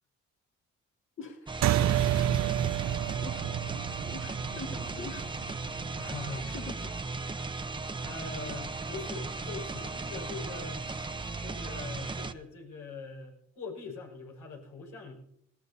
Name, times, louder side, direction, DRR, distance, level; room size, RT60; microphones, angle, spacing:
voice 1, 1.2-1.8 2.2-2.5 3.2-5.4 5.9-6.1 6.5-6.9, left 3 dB, 45° left, 1 dB, 1.9 m, -45 dB
sound 1, 1.5-12.3, right 3 dB, 15° right, 0.8 m, -37 dB
sound 2, 1.6-6.4, right 12 dB, 65° right, 0.5 m, -30 dB
voice 2, 6.0-6.6 8.0-10.9 11.4-15.2, left 3 dB, 85° left, 0 dB, 5.5 m, -42 dB
19.5 x 17.5 x 2.8 m, 0.74 s
cardioid pair, 90°, 30 cm